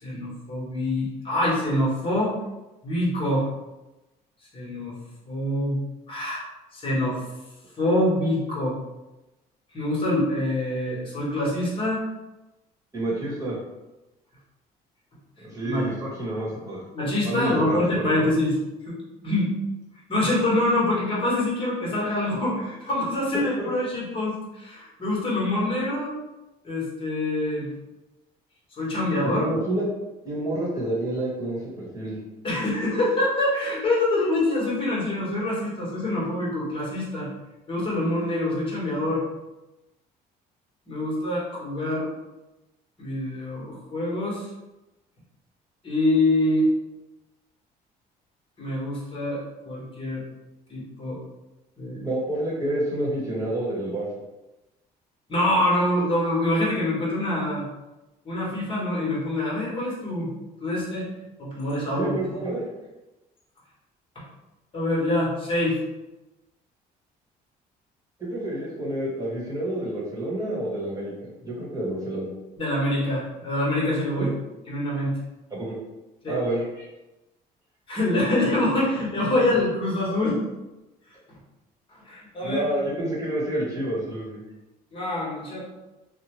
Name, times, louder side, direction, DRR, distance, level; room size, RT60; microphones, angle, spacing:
voice 1, 0.0-2.3 2.8-3.5 4.5-4.9 5.2-5.8 6.1-6.4 6.7-7.2 7.8-8.7 9.7-12.0 15.6-15.9 16.9-18.6 18.9-19.0 19.2-19.5 20.1-26.1 26.6-27.7 28.8-29.5 32.4-37.3 37.7-39.2 40.9-42.1 43.0-44.5 45.8-46.7 48.6-50.2 50.7-51.2 51.8-52.0 55.3-57.6 58.2-60.3 60.6-61.1 61.4-62.1 64.7-65.8 72.6-74.3 74.7-75.1 76.2-76.4 77.9-80.4 82.0-82.6 84.9-85.6, left 1 dB, 30° left, -6 dB, 1.3 m, -25 dB
voice 2, 12.9-13.6 15.4-16.8 17.2-18.2 23.6-23.7 29.3-29.8 30.2-32.2 52.0-54.1 61.9-62.6 68.2-72.3 74.2-74.3 75.5-75.7 76.3-76.8 82.4-84.4, right 1 dB, 20° right, -6 dB, 1.3 m, -29 dB
2.7 x 2.2 x 3.0 m, 1.0 s
cardioid pair, 110°, 17 cm